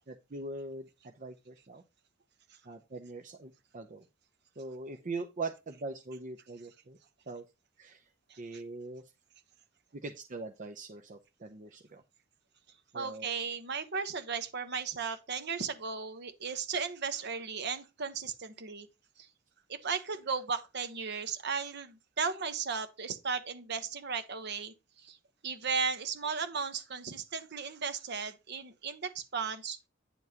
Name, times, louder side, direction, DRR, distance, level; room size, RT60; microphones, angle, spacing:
voice 1, 0.1-1.8 2.6-4.1 4.6-7.0 7.3-7.4 7.8-8.1 8.4-9.0 9.9-12.0 12.9-13.3, right 3 dB, 40° right, 0.7 m, -42 dB
voice 2, 12.9-18.9 19.2-19.3 19.7-25.2 25.4-29.8, right 5 dB, 55° right, 1.0 m, -35 dB
9.4 x 7.0 x 2.9 m
head